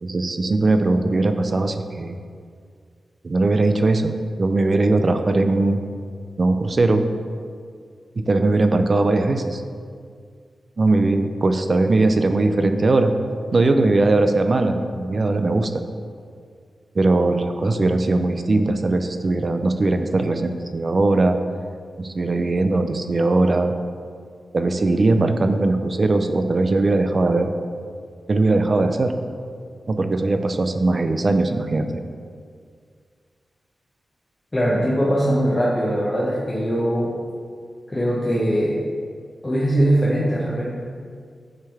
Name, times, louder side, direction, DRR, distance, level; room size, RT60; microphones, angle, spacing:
voice 1, 0.0-2.2 3.2-4.1 4.4-5.8 6.4-7.1 8.2-9.6 10.8-13.1 13.5-15.8 17.0-21.4 22.0-23.7 24.5-27.5 28.3-29.1 29.9-32.1, right 2 dB, 35° right, 7 dB, 0.3 m, -20 dB
voice 2, 34.5-37.1 37.9-38.8 39.4-40.7, equal, 20° left, -7 dB, 0.7 m, -21 dB
8.9 x 3.3 x 3.5 m, 2.1 s
wide cardioid pair, 175°, 0 cm